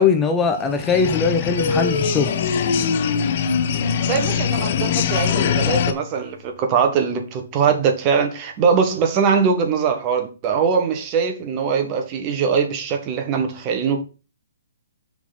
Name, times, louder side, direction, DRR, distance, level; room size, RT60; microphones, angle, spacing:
voice 1, 0.0-2.3, left 5 dB, 15° left, 0.8 m, -20 dB
sound 1, 0.6-5.9, left 9 dB, 50° left, 0.7 m, -23 dB
sound 2, 1.6-6.4, left 3 dB, 80° left, 1.7 m, -27 dB
voice 2, 4.1-14.0, right 6 dB, 30° right, 1.4 m, -21 dB
6.0 x 4.1 x 5.8 m
hypercardioid pair, 135°, 0 cm